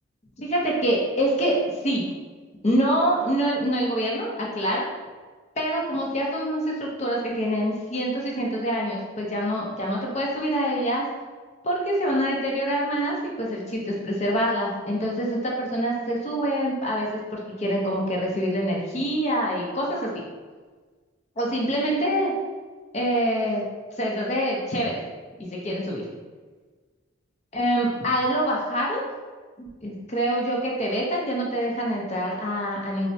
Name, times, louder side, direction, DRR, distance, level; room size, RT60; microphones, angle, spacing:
voice 1, 0.4-1.6 1.8-2.1 2.6-4.9 5.6-11.1 11.6-20.1 21.4-22.3 22.9-23.6 24.0-25.0 25.4-26.0 27.5-29.0 29.6-33.1, equal, 35° left, -2 dB, 0.6 m, -25 dB
4.4 x 2.0 x 2.7 m, 1.4 s
head